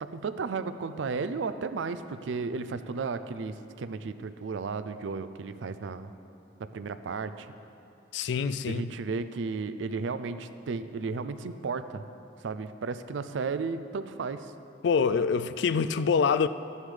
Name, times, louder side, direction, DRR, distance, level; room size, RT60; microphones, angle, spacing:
voice 1, 0.0-6.1 6.6-7.5 8.7-12.0 12.4-14.5, right 4 dB, 85° right, 0.4 m, -34 dB
voice 2, 8.1-8.9 14.8-16.5, left 5 dB, 70° left, 0.3 m, -25 dB
12.5 x 9.6 x 3.3 m
head